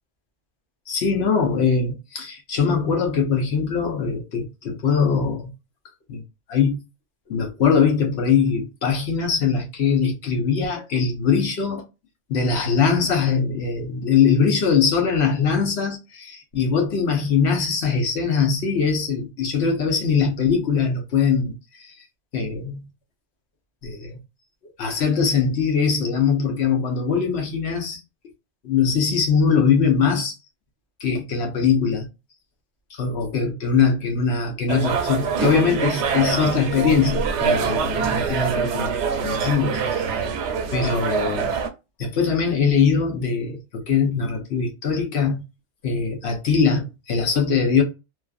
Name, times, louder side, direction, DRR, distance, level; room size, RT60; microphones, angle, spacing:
voice 1, 0.9-5.5 6.1-6.2 6.5-6.8 7.3-11.8 12.3-21.9 22.3-22.8 23.8-24.2 24.8-28.0 28.6-30.3 31.0-32.1 33.0-38.9 39.2-40.1 40.7-41.5 42.0-45.4 45.8-47.8, left 6 dB, 70° left, 1.1 m, -21 dB
sound 1, 34.7-41.7, right 6 dB, 85° right, 0.9 m, -24 dB
2.9 x 2.3 x 2.3 m
omnidirectional pair, 1.1 m